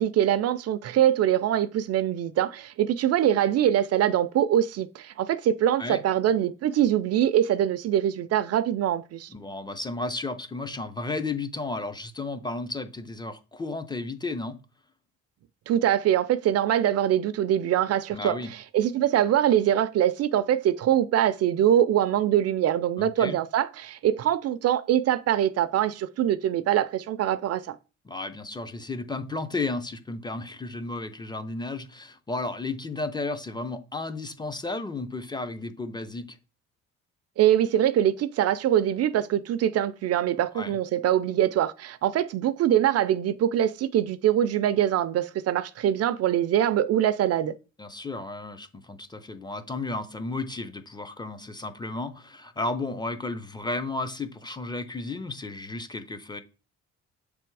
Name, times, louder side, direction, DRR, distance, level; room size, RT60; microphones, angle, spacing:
voice 1, 0.0-9.3 15.7-27.7 37.4-47.5, right 11 dB, 55° right, 0.5 m, -23 dB
voice 2, 9.3-14.6 18.1-18.5 23.0-23.4 28.0-36.4 40.5-40.8 47.8-56.4, left 3 dB, 15° left, 0.6 m, -33 dB
7.4 x 3.4 x 4.7 m
cardioid pair, 120°, 29 cm